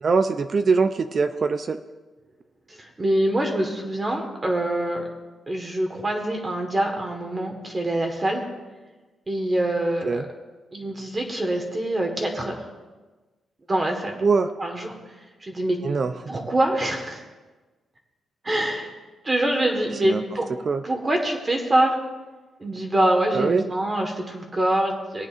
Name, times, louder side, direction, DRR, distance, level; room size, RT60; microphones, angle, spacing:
voice 1, 0.0-1.8 10.0-10.2 14.2-14.5 15.8-16.1 20.0-20.2 20.6-20.8 23.3-23.6, right 4 dB, 40° right, 9 dB, 0.4 m, -22 dB
voice 2, 2.7-5.1 5.5-8.5 9.3-10.2 10.7-12.6 13.7-14.2 14.6-14.9 15.4-15.8 16.3-17.2 18.4-18.9 19.2-20.5 20.8-22.0 22.6-25.3, right 1 dB, 25° right, 2 dB, 1.4 m, -24 dB
19.0 x 9.3 x 2.5 m, 1.2 s
cardioid pair, 135°, 0 cm